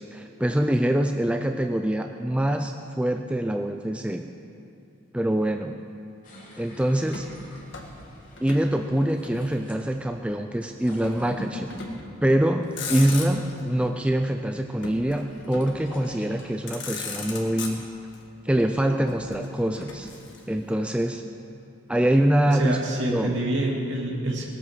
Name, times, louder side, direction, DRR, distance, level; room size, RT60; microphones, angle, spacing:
voice 1, 0.0-4.3 5.1-5.8 6.6-7.3 8.4-11.7 12.2-17.8 18.4-20.1 20.5-21.2 21.9-22.8 23.1-23.4, right 1 dB, 5° right, 5 dB, 0.3 m, -24 dB
sound 1, 6.2-9.8 10.6-12.3 12.6-14.1 14.6-18.1, left 1 dB, 40° left, 2.9 m, -45 dB
Motor vehicle (road), 7.1-8.7 9.0-10.0 11.0-11.3 11.7-12.1 12.6-13.6 14.8-15.9 16.4-16.5 16.7-18.2 19.1-20.7, left 4 dB, 60° left, 1.7 m, -38 dB
voice 2, 22.5-24.5, right 1 dB, 60° right, -1 dB, 2.4 m, -27 dB
19.0 x 8.3 x 6.6 m, 2.6 s
head